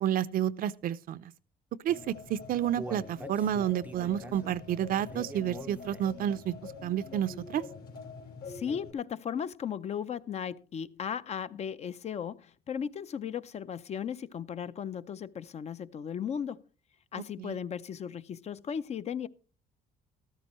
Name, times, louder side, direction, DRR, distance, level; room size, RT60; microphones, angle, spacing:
voice 1, 0.0-1.2 1.8-6.5 6.8-7.6 17.4-17.6, right 10 dB, 60° right, 0.6 m, -30 dB
sound 1, 1.9-8.9, left 5 dB, 70° left, 2.9 m, -45 dB
Human voice, 2.2-6.3 6.7-6.8 7.3-7.4, right 2 dB, 10° right, 0.5 m, -45 dB
voice 2, 8.5-16.6 17.1-19.3, left 8 dB, 40° left, 0.5 m, -36 dB
13.0 x 13.0 x 3.0 m
cardioid pair, 110°, 17 cm